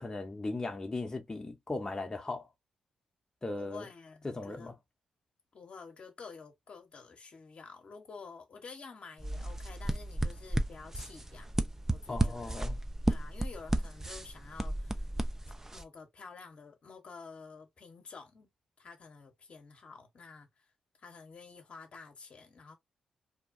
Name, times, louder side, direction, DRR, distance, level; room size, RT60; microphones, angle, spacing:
voice 1, 0.0-2.5 3.4-3.8 4.2-4.7 12.1-12.8, left 2 dB, 25° left, 0.8 m, -37 dB
voice 2, 3.5-4.7 5.5-11.6 11.9-12.5 13.1-15.1 15.7-18.5 18.8-20.7 21.0-22.8, left 4 dB, 55° left, 0.9 m, -50 dB
sound 1, 9.2-15.8, right 1 dB, 15° right, 0.5 m, -33 dB
2.8 x 2.2 x 2.5 m
hypercardioid pair, 45°, 2 cm